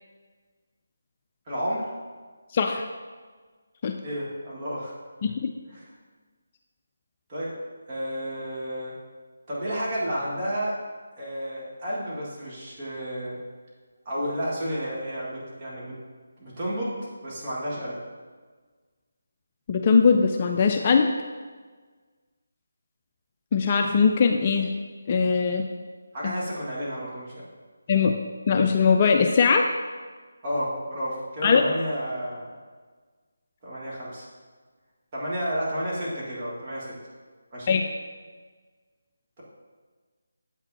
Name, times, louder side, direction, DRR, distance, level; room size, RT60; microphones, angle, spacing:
voice 1, 1.5-1.9 4.0-4.9 5.7-5.9 7.3-7.5 7.9-9.0 9.5-10.7 11.2-13.4 14.1-16.0 16.4-18.0 26.1-27.4 30.4-32.5 33.6-34.3 35.1-36.9 37.5-37.8, equal, 30° right, -7 dB, 1.9 m, -31 dB
voice 2, 2.5-2.8 3.8-3.9 5.2-5.5 19.7-21.1 23.5-24.7 25.1-25.6 26.2-26.3 27.9-28.1 28.5-29.6 31.4-31.6 37.7-37.8, left 5 dB, 30° left, 3 dB, 0.4 m, -20 dB
7.7 x 5.7 x 2.8 m, 1.5 s
figure-of-eight pair, 155°, 0 cm